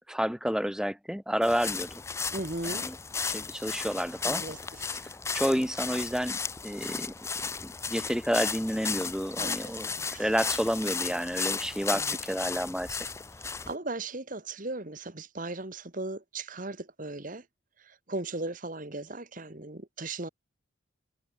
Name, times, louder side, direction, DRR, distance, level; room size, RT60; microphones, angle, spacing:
voice 1, 0.1-1.9 2.8-2.9 3.3-4.4 5.3-7.1 7.6-13.0, equal, 5° right, 2.1 m, -30 dB
sound 1, 1.4-13.7, left 5 dB, 15° left, 0.4 m, -35 dB
voice 2, 2.3-2.9 4.2-5.0 9.3-10.3 11.9-12.2 13.4-17.4 17.8-20.3, right 2 dB, 40° right, 1.5 m, -38 dB
head